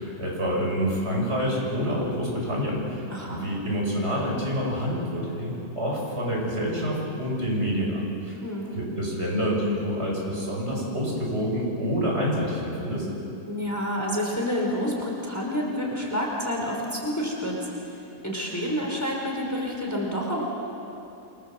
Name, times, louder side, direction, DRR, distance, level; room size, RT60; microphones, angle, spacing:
voice 1, 0.0-8.4 8.7-13.1, equal, 40° right, -3 dB, 7.7 m, -27 dB
voice 2, 3.1-3.5 8.4-8.7 13.4-17.6 18.2-20.4, equal, 10° left, -1 dB, 4.8 m, -28 dB
29.0 x 25.5 x 7.8 m, 2.9 s
omnidirectional pair, 1.8 m